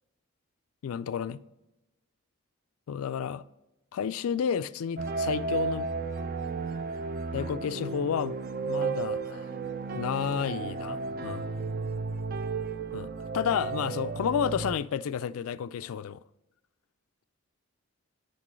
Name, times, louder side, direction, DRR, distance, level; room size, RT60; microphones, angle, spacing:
voice 1, 0.8-1.4 2.9-3.4 3.9-5.9 7.3-8.4 8.7-9.5 9.9-11.4 12.9-16.2, left 7 dB, 70° left, 0.3 m, -31 dB
sound 1, 5.0-14.8, right 4 dB, 40° right, 0.4 m, -33 dB
9.6 x 6.0 x 3.1 m
head